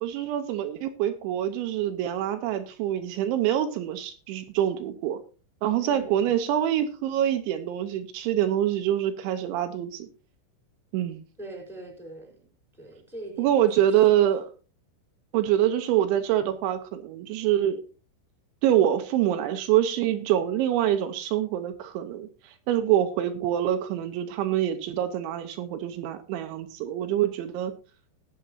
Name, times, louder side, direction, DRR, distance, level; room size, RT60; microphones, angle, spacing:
voice 1, 0.0-5.2 5.6-10.1 10.9-11.2 13.4-14.5 15.3-17.8 18.6-27.7, right 11 dB, 80° right, 3.2 m, -25 dB
voice 2, 5.8-6.3 11.4-14.2, right 1 dB, ahead, 3.4 m, -43 dB
19.0 x 7.9 x 2.7 m
omnidirectional pair, 5.5 m